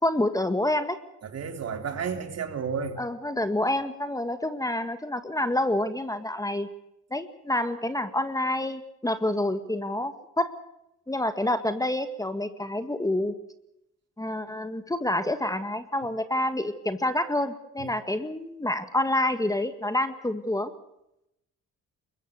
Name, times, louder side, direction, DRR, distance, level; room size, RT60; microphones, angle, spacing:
voice 1, 0.0-1.0 3.0-6.7 7.1-10.5 11.1-13.3 14.2-20.7, left 1 dB, 10° left, 10 dB, 1.8 m, -28 dB
voice 2, 1.2-3.0 17.8-17.9, right 6 dB, 55° right, 6 dB, 3.4 m, -32 dB
24.0 x 22.0 x 6.6 m, 0.83 s
cardioid pair, 90°, 30 cm